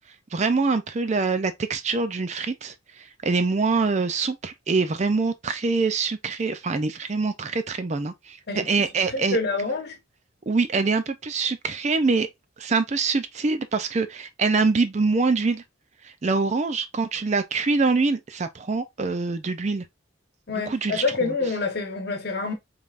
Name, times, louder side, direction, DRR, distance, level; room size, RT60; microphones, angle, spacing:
voice 1, 0.3-8.4 8.7-9.4 10.5-12.3 12.6-15.6 16.0-19.8 20.5-21.3, right 4 dB, 35° right, 0.4 m, -24 dB
voice 2, 9.1-9.9 20.5-22.5, left 3 dB, 50° left, 1.1 m, -27 dB
5.4 x 3.3 x 2.5 m
head